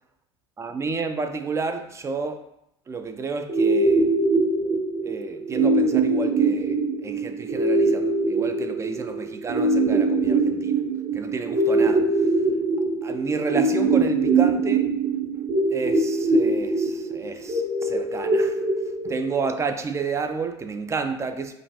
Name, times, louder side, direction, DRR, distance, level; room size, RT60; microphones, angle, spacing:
voice 1, 0.6-2.5 2.9-4.1 5.1-10.8 11.1-12.3 13.0-14.9 15.7-18.6 19.0-21.5, right 4 dB, 20° right, 0.4 m, -31 dB
sound 1, 3.5-19.5, right 3 dB, 50° right, 1.0 m, -22 dB
5.1 x 2.4 x 2.7 m
figure-of-eight pair, 75°, 15 cm